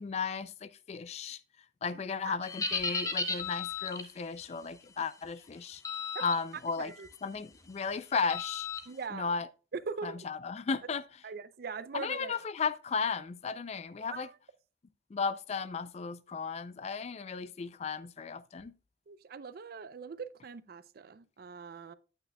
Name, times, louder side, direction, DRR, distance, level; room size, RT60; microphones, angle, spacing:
voice 1, 0.0-1.4 1.8-5.8 6.2-6.9 7.2-8.7 9.1-9.5 10.0-11.0 11.9-14.3 15.1-18.7, left 5 dB, 35° left, 0.4 m, -35 dB
sound 1, 2.4-4.1 5.8-6.4 6.8-7.1 8.3-8.8, left 4 dB, 20° left, 0.7 m, -34 dB
voice 2, 8.9-9.3 9.7-10.3 11.2-12.3 14.1-14.3 19.1-21.9, right 5 dB, 55° right, 0.4 m, -41 dB
9.0 x 8.7 x 2.2 m
head